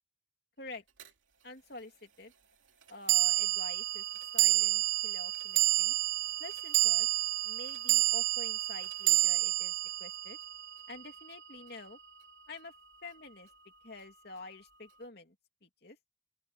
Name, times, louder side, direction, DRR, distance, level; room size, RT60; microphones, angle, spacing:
sound 1, 1.0-1.1 3.1-11.5, right 15 dB, 80° right, 3.0 m, -29 dB
voice 1, 1.4-2.3 2.9-4.0 4.3-5.9 6.4-7.1 7.4-9.7 10.0-10.4 10.9-12.0 12.5-12.7 13.0-13.5 13.8-15.3 15.6-16.0, left 3 dB, 55° left, 3.0 m, -48 dB
open air
head